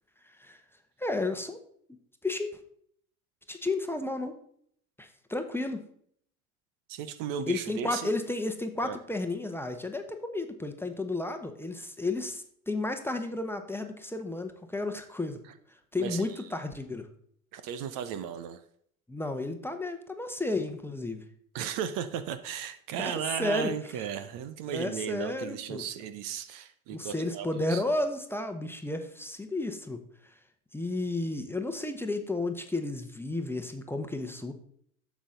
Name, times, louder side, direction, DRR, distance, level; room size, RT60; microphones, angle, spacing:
voice 1, 1.0-1.6 2.2-2.5 3.5-4.3 5.0-5.8 7.5-15.4 15.9-17.1 19.1-21.2 23.0-23.7 24.7-25.8 26.9-30.0 30.7-34.5, left 2 dB, 5° left, 6 dB, 1.1 m, -32 dB
voice 2, 6.9-8.1 8.8-9.0 16.0-16.4 17.5-18.6 21.5-27.8, right 8 dB, 50° right, 11 dB, 1.0 m, -35 dB
11.5 x 7.2 x 3.9 m, 0.66 s
hypercardioid pair, 75°, 42 cm